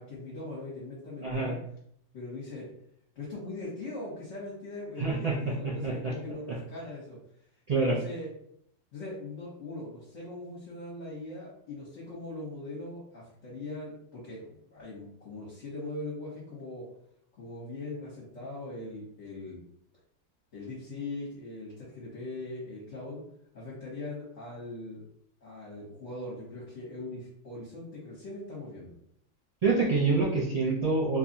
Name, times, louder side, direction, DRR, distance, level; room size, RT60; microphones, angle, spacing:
voice 1, 0.0-1.6 2.1-2.7 3.1-7.2 7.8-8.3 8.9-16.8 17.4-19.6 20.5-23.2 23.5-25.0 25.4-28.9, left 2 dB, 50° left, -7 dB, 1.4 m, -40 dB
voice 2, 1.2-1.6 5.0-6.1 6.5-6.6 7.7-8.0 29.6-31.2, right 3 dB, 75° right, -6 dB, 0.3 m, -27 dB
3.2 x 2.4 x 4.0 m, 0.69 s
omnidirectional pair, 1.7 m